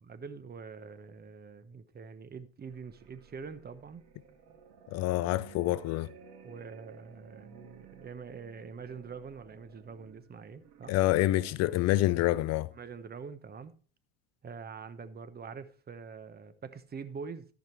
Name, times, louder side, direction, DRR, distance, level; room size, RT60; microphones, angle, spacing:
voice 1, 0.0-4.0 6.4-10.9 12.7-13.7 14.4-17.5, right 5 dB, 30° right, 1.1 m, -45 dB
sound 1, 2.6-11.5, right 6 dB, 75° right, 2.2 m, -55 dB
voice 2, 4.9-6.1 10.9-12.7, left 15 dB, 60° left, 0.5 m, -27 dB
13.5 x 5.2 x 4.5 m
hypercardioid pair, 75°, 30 cm